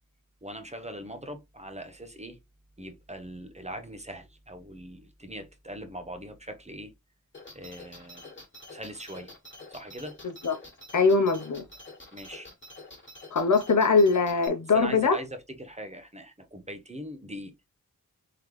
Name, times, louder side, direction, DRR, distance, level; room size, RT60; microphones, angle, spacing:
voice 1, 0.4-2.4 2.8-6.9 7.5-8.3 8.7-9.3 9.7-10.2 12.1-12.5 14.7-17.5, equal, 20° right, 0.8 m, -41 dB
sound 1, 7.3-14.5, left 2 dB, 35° left, 1.6 m, -47 dB
voice 2, 10.9-11.6 13.3-15.2, left 4 dB, 60° left, 0.8 m, -22 dB
3.8 x 3.3 x 3.1 m
wide cardioid pair, 85°, 34 cm